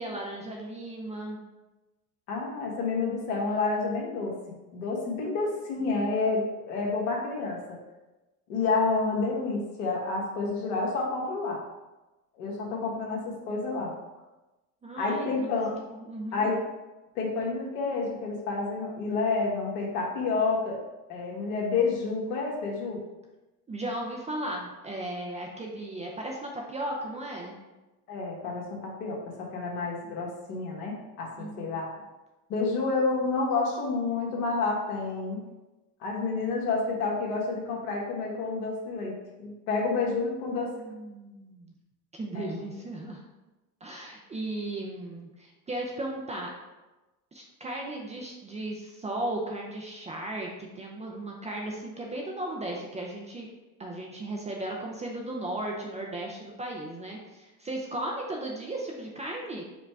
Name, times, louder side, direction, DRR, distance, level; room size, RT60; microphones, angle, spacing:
voice 1, 0.0-1.4 12.7-13.4 14.8-15.6 16.0-16.5 23.7-27.6 31.4-31.7 39.9-41.7 42.1-43.2 43.8-46.5 47.3-53.5 53.8-59.6, right 1 dB, 15° right, -1 dB, 0.5 m, -36 dB
voice 2, 2.3-4.3 4.7-7.6 8.5-11.6 12.3-13.9 15.0-15.7 16.3-16.6 17.1-20.8 21.1-23.0 28.1-31.9 32.5-35.4 36.0-39.1 39.4-40.7 42.3-42.7, left 3 dB, 70° left, -2 dB, 1.5 m, -29 dB
4.9 x 2.2 x 4.6 m, 1.1 s
supercardioid pair, 105°, 46 cm